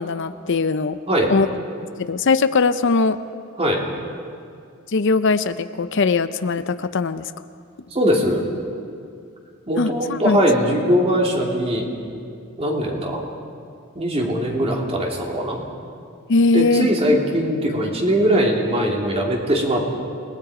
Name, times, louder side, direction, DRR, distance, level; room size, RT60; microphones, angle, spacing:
voice 1, 0.0-1.0 1.3-1.5 2.0-3.2 4.9-7.3 9.8-10.4 16.3-16.9, left 4 dB, 65° left, 12 dB, 0.6 m, -20 dB
voice 2, 7.9-8.4 9.7-11.9 12.6-13.2 13.9-15.6 16.5-19.9, equal, 30° right, 0 dB, 3.0 m, -20 dB
29.0 x 19.5 x 5.0 m, 2.3 s
head